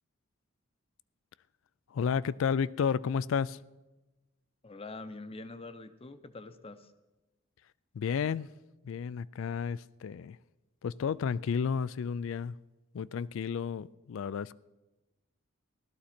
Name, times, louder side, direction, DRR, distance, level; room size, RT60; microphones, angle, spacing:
voice 1, 1.9-3.6 7.9-8.5 8.8-10.4 10.8-12.5 12.9-14.5, left 6 dB, 65° left, 0.3 m, -32 dB
voice 2, 4.6-6.9, left 3 dB, 30° left, 0.7 m, -45 dB
17.0 x 13.0 x 4.3 m
head